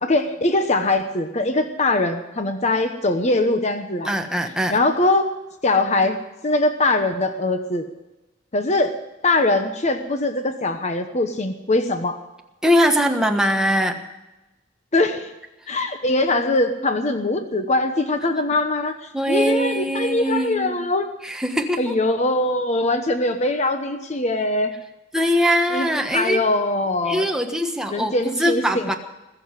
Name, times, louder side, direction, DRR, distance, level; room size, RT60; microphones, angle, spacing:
voice 1, 0.0-4.1 4.7-5.3 5.6-6.2 6.4-7.8 8.5-8.9 9.2-12.2 14.9-15.3 15.7-18.9 19.3-21.1 21.8-24.7 25.7-27.3 27.9-28.9, left 2 dB, 35° left, 7 dB, 1.0 m, -22 dB
voice 2, 4.0-4.8 12.6-14.0 19.1-20.9 21.2-21.9 25.1-26.4 27.1-29.0, equal, 5° right, 3 dB, 1.3 m, -21 dB
21.0 x 7.1 x 9.7 m, 1.0 s
head